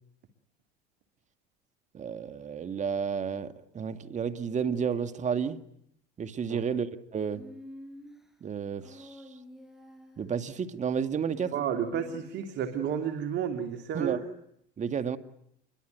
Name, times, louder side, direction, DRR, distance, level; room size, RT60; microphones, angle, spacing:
voice 1, 1.9-5.6 6.2-6.9 7.1-7.4 8.4-9.2 10.2-11.5 13.9-14.3 14.8-15.2, right 7 dB, 35° right, 11 dB, 1.9 m, -31 dB
Human voice, 7.3-8.3 8.8-10.4 11.2-12.5, left 1 dB, ahead, 6.1 m, -48 dB
voice 2, 11.5-14.2, right 8 dB, 55° right, 7 dB, 2.9 m, -31 dB
28.0 x 23.0 x 9.3 m, 0.74 s
supercardioid pair, 95°, 21 cm